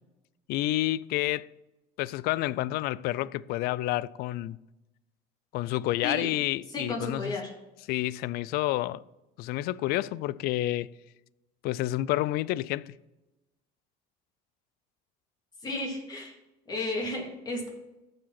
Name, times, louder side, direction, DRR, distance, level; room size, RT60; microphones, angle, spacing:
voice 1, 0.5-1.5 2.0-4.6 5.5-7.3 7.9-9.0 9.4-10.9 11.6-12.9, left 16 dB, 65° left, 0.4 m, -29 dB
voice 2, 6.7-7.5 15.6-16.3 16.7-17.7, left 2 dB, 25° left, 2.9 m, -33 dB
14.5 x 5.0 x 4.1 m
cardioid pair, 135°, 17 cm